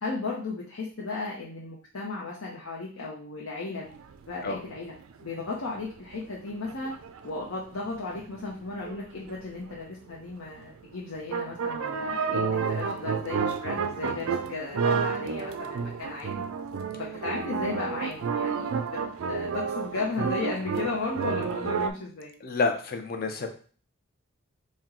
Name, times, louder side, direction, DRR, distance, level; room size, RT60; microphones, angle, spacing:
voice 1, 0.0-3.9 4.3-4.9 5.2-16.4 17.0-19.0 19.3-22.3, left 3 dB, 75° left, -3 dB, 0.7 m, -35 dB
sound 1, 3.9-4.5 4.8-5.5 5.8-5.9 6.1-6.2 6.5-8.4 8.8-10.1 10.6-10.7 11.3-21.9, right 5 dB, 70° right, 0.4 m, -30 dB
voice 2, 22.4-23.5, left 3 dB, 45° left, 6 dB, 0.5 m, -29 dB
4.4 x 2.2 x 3.7 m, 0.42 s
head